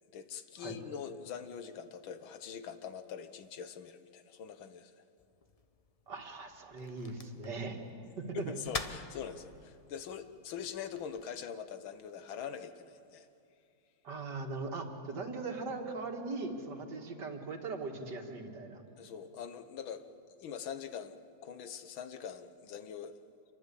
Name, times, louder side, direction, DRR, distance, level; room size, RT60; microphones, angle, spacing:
voice 1, 0.1-5.0 8.3-13.3 19.0-23.1, left 7 dB, 85° left, 10 dB, 1.9 m, -43 dB
sound 1, 5.2-11.2, left 3 dB, 30° left, 0.7 m, -47 dB
voice 2, 6.1-7.8 8.2-8.6 14.0-18.8, right 3 dB, 60° right, 3 dB, 2.6 m, -40 dB
27.5 x 23.0 x 8.4 m, 2.6 s
omnidirectional pair, 2.1 m